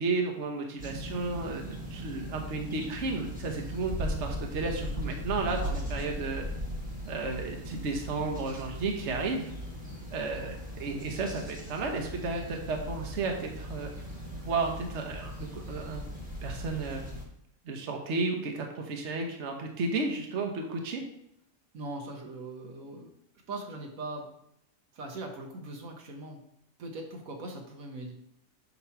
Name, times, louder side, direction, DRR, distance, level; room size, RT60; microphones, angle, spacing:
voice 1, 0.0-6.5 7.1-9.5 10.1-13.9 14.4-16.0 16.4-17.0 17.6-21.0, right 3 dB, 60° right, 2 dB, 1.3 m, -33 dB
sound 1, 0.8-17.2, equal, 5° right, 1.4 m, -38 dB
voice 2, 5.5-6.0 21.7-23.1 23.5-24.3 24.9-26.4 26.8-28.1, right 2 dB, 85° right, 2 dB, 1.5 m, -40 dB
8.0 x 3.1 x 5.7 m, 0.75 s
omnidirectional pair, 1.4 m